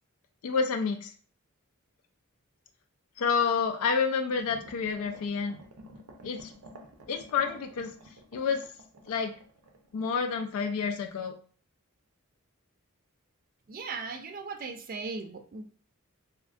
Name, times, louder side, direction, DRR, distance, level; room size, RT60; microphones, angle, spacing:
voice 1, 0.4-1.1 3.2-5.6 6.2-6.5 7.1-7.9 8.3-8.6 9.1-9.3 9.9-11.3, left 5 dB, 70° left, 5 dB, 0.3 m, -29 dB
sound 1, 4.4-10.7 11.0-11.1, equal, 90° right, 0.6 m, -51 dB
voice 2, 13.7-15.6, right 4 dB, 40° right, 7 dB, 0.3 m, -38 dB
3.6 x 2.1 x 2.4 m, 0.43 s
head